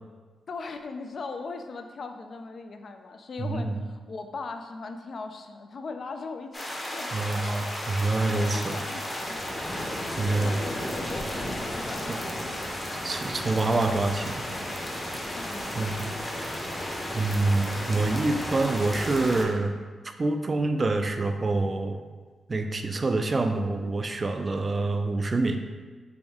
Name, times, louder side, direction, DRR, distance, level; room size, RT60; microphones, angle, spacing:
voice 1, 0.5-7.2 8.2-9.4 10.3-12.9 15.3-15.8, left 4 dB, 55° left, 6 dB, 0.3 m, -39 dB
voice 2, 3.4-3.8 7.1-8.8 10.2-10.5 12.1-12.2 13.0-14.5 15.8-16.1 17.1-19.8 20.2-22.0 22.5-25.6, right 2 dB, 40° right, 6 dB, 0.3 m, -26 dB
sound 1, 6.5-19.4, left 1 dB, 25° left, 0.7 m, -33 dB
3.5 x 2.5 x 3.5 m, 1.4 s
cardioid pair, 65°, 0 cm